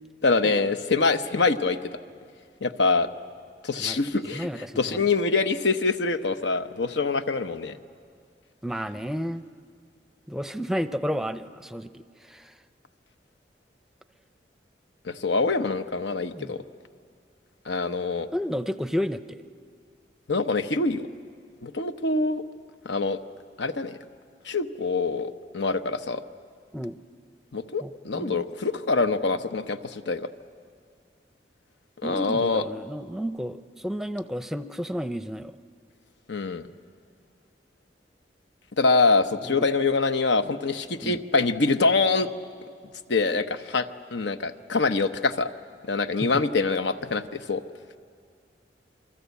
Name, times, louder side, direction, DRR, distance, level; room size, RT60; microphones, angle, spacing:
voice 1, 0.2-1.9 2.6-3.1 3.6-7.8 15.0-16.6 17.7-18.3 20.3-21.1 21.6-22.4 22.8-23.2 23.6-24.0 24.4-26.2 27.5-30.3 32.0-32.6 36.3-36.6 38.8-42.3 43.1-45.5 45.9-47.6, left 3 dB, 85° left, 9 dB, 0.9 m, -25 dB
voice 2, 4.3-5.0 8.6-9.5 10.3-12.5 16.3-16.6 18.3-19.4 26.7-27.0 27.8-28.5 32.0-35.6 39.4-39.7 41.0-41.2 46.2-46.4, equal, ahead, 11 dB, 0.6 m, -32 dB
27.5 x 23.5 x 8.3 m, 2.1 s
head